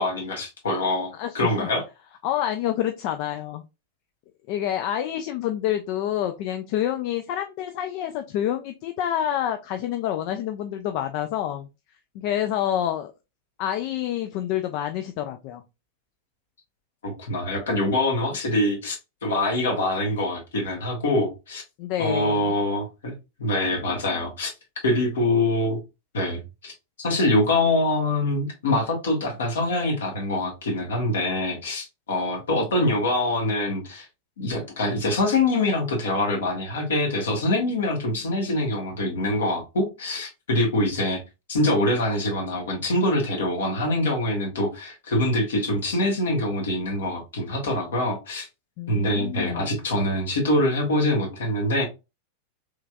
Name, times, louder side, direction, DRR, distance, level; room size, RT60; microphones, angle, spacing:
voice 1, 0.0-1.8 17.0-21.6 22.0-23.1 23.4-24.5 24.8-25.8 26.1-26.7 27.0-34.0 34.4-41.2 41.5-48.5 48.9-51.8, left 1 dB, 65° left, 1.2 m, -24 dB
voice 2, 1.1-1.7 2.2-3.6 4.5-11.7 12.1-13.1 13.6-15.6 21.8-22.6 48.8-49.8, left 11 dB, 45° left, 0.3 m, -28 dB
3.2 x 3.2 x 2.2 m
figure-of-eight pair, 90°, 0 cm